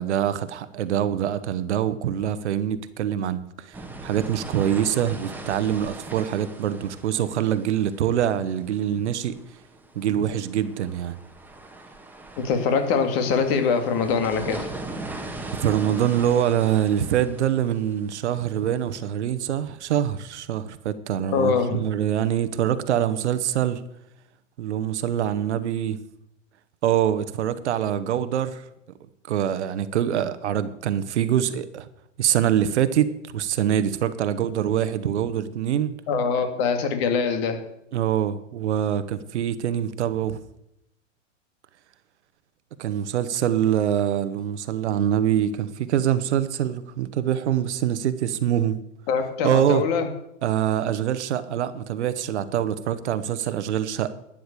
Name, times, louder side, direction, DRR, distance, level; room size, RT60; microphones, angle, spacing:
voice 1, 0.0-9.4 9.9-11.2 15.6-23.8 24.6-26.0 26.8-28.6 29.3-31.9 32.2-35.9 37.9-40.4 42.8-48.8 49.4-49.8 50.4-54.1, right 10 dB, 60° right, 1.1 m, -24 dB
sound 1, 3.7-19.1, right 2 dB, 5° right, 1.5 m, -40 dB
voice 2, 12.4-14.7 21.2-21.8 36.1-37.6 49.1-50.1, left 5 dB, 50° left, 2.5 m, -23 dB
12.0 x 9.3 x 6.8 m
figure-of-eight pair, 100°, 38 cm